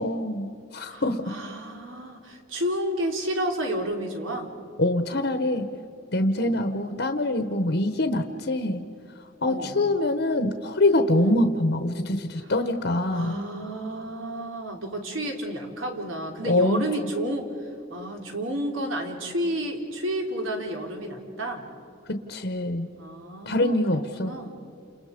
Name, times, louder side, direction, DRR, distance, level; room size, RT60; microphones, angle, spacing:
voice 1, 0.0-1.2 4.8-5.6 6.1-8.8 9.4-13.4 16.5-16.8 22.1-22.9 23.5-24.3, left 1 dB, 60° left, 7 dB, 1.1 m, -24 dB
voice 2, 0.8-4.5 6.3-6.6 9.4-9.8 11.1-11.4 12.4-12.5 13.1-21.6 23.0-24.5, right 1 dB, 85° right, 2 dB, 3.4 m, -31 dB
29.5 x 28.5 x 5.2 m, 2.6 s
head